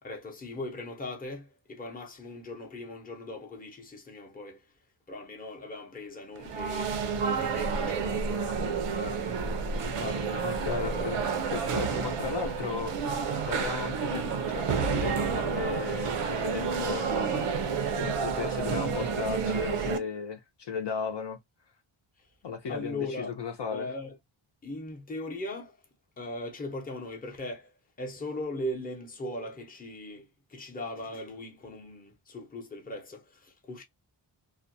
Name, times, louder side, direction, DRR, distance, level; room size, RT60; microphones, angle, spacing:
voice 1, 0.0-4.7 5.1-9.5 9.9-11.3 11.9-12.1 22.7-23.3 23.7-24.2 24.6-25.8 26.2-27.7 28.0-33.8, left 1 dB, 20° left, 0.6 m, -39 dB
sound 1, 6.4-20.0, right 5 dB, 85° right, 0.7 m, -30 dB
voice 2, 10.4-13.2 13.4-17.7 18.0-21.4 22.4-23.9, left 6 dB, 55° left, 0.6 m, -36 dB
2.4 x 2.1 x 2.6 m
wide cardioid pair, 170°, 50 cm